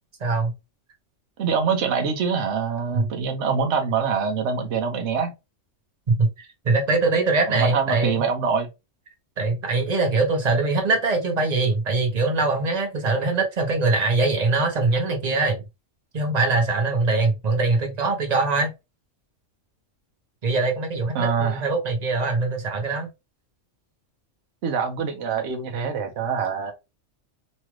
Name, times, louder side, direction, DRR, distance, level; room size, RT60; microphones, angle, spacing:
voice 1, 0.2-0.5 2.9-3.1 6.2-6.3 6.6-8.3 9.4-15.6 16.1-18.7 20.4-23.1, right 3 dB, 35° right, 0.9 m, -22 dB
voice 2, 1.4-5.3 7.5-8.7 21.1-21.6 24.6-26.7, right 5 dB, 70° right, 0.9 m, -24 dB
3.0 x 2.3 x 2.9 m
omnidirectional pair, 1.3 m